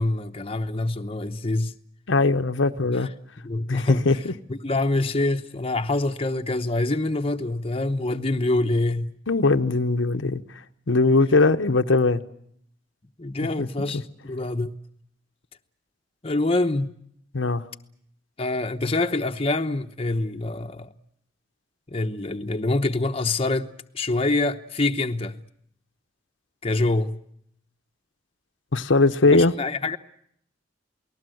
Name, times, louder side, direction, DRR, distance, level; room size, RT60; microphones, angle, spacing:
voice 1, 0.0-1.7 2.9-3.1 3.4-4.1 4.5-9.2 13.2-14.7 16.2-16.9 18.4-20.9 21.9-25.4 26.6-27.2 29.3-30.0, left 2 dB, 30° left, 0.9 m, -25 dB
voice 2, 2.1-3.1 3.7-4.3 9.3-10.4 10.9-12.2 13.6-13.7 17.3-17.6 28.7-29.5, left 3 dB, 75° left, 1.0 m, -20 dB
28.5 x 19.5 x 7.8 m
head